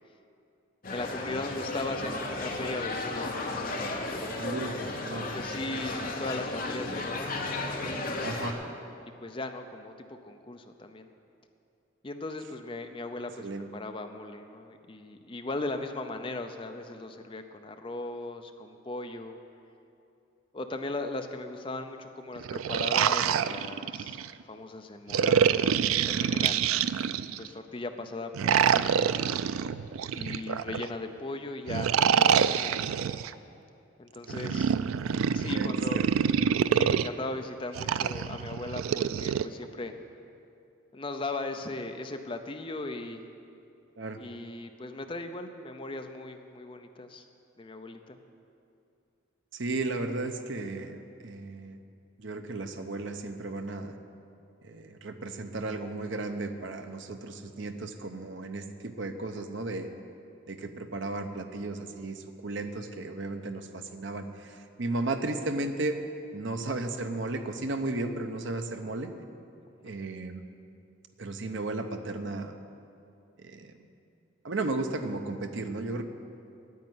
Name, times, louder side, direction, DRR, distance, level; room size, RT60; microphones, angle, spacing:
sound 1, 0.8-8.5, left 2 dB, 45° left, 1.0 m, -34 dB
voice 1, 0.9-4.4 5.3-7.5 7.9-8.7 9.2-11.1 12.0-13.5 13.7-19.4 20.5-25.7 26.1-26.7 27.4-29.1 30.1-33.0 34.0-34.7 35.3-36.2 36.7-39.9 40.9-43.3 44.2-47.2 47.6-48.2 68.9-69.0, left 2 dB, 25° left, 6 dB, 0.6 m, -38 dB
voice 2, 4.4-5.3 8.2-8.6 13.4-13.7 34.4-34.5 35.4-36.2 44.0-44.2 49.5-51.8 52.2-54.0 54.6-59.9 60.5-66.0 66.3-69.1 69.8-70.4 71.2-72.6 73.4-73.7 74.4-76.0, right 2 dB, 65° right, 7 dB, 0.8 m, -34 dB
sound 2, 22.4-24.3 25.1-27.5 28.3-30.9 31.7-33.3 34.3-37.1 37.8-39.4, right 7 dB, 85° right, 0.4 m, -26 dB
9.4 x 8.7 x 9.5 m, 2.6 s
head